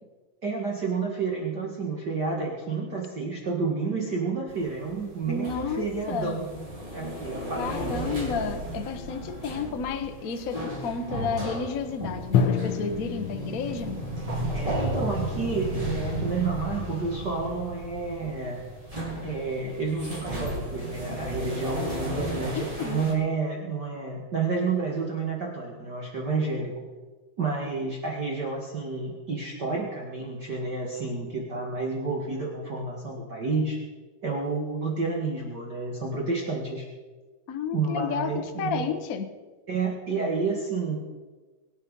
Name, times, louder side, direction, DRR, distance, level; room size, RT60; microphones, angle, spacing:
voice 1, 0.4-6.5 6.9-7.8 9.4-9.5 14.5-18.6 19.2-26.8 27.4-33.8 34.2-36.9 37.7-38.8 39.7-41.0, right 4 dB, 40° right, -2 dB, 2.2 m, -30 dB
sound 1, 4.5-23.1, right 1 dB, 10° right, 3.7 m, -34 dB
voice 2, 5.3-6.4 7.6-14.0 22.5-23.0 37.5-39.3, left 5 dB, 75° left, 8 dB, 0.8 m, -31 dB
Drum, 12.3-16.1, left 6 dB, 60° left, 1.5 m, -30 dB
24.0 x 9.0 x 5.5 m, 1.3 s
omnidirectional pair, 3.3 m